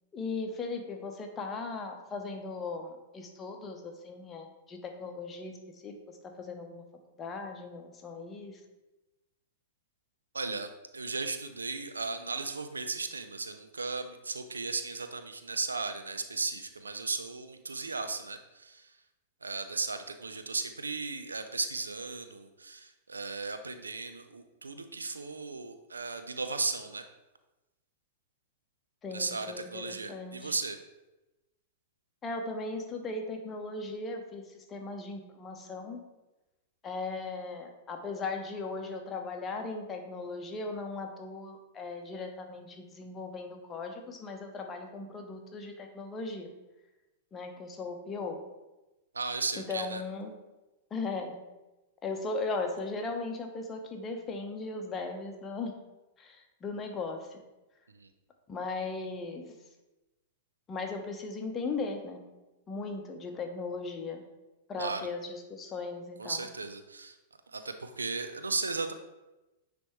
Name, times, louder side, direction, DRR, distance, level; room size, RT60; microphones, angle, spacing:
voice 1, 0.1-6.8 7.2-8.6 29.0-30.5 32.2-36.0 36.8-46.5 47.3-48.4 49.6-50.4 50.9-51.4 52.0-55.8 56.2-57.4 58.5-59.5 60.7-62.2 62.7-64.2 64.7-66.5, left 3 dB, 25° left, 4 dB, 1.0 m, -38 dB
voice 2, 10.3-18.9 19.4-27.0 29.1-30.8 49.1-50.0 58.0-58.1 64.8-65.0 66.2-67.1 67.5-68.9, right 4 dB, 80° right, 8 dB, 0.5 m, -36 dB
9.8 x 3.4 x 3.1 m, 1.0 s
figure-of-eight pair, 100°, 0 cm